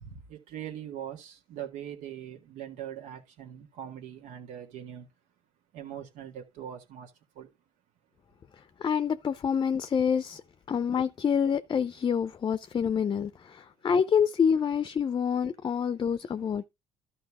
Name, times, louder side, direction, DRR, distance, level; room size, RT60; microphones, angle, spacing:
voice 1, 0.0-5.1 5.7-7.1 7.4-7.5, right 10 dB, 85° right, 1.9 m, -41 dB
voice 2, 8.8-10.4 10.7-16.6, left 7 dB, 35° left, 0.5 m, -27 dB
12.0 x 5.4 x 3.6 m
cardioid pair, 95°, 13 cm